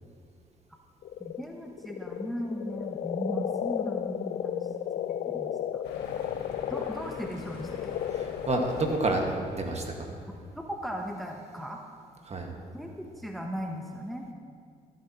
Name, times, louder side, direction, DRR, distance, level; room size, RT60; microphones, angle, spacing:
sound 1, 1.0-9.1, left 10 dB, 55° left, 0.4 m, -34 dB
voice 1, 1.2-4.7 5.0-5.8 6.7-8.0 10.6-11.8 12.7-14.2, equal, ahead, 2 dB, 0.9 m, -37 dB
sound 2, 5.8-10.8, left 3 dB, 85° left, 1.3 m, -45 dB
voice 2, 8.1-10.1 12.2-12.5, right 2 dB, 40° right, 2 dB, 1.7 m, -29 dB
14.5 x 8.7 x 2.9 m, 2.2 s
supercardioid pair, 60°, 17 cm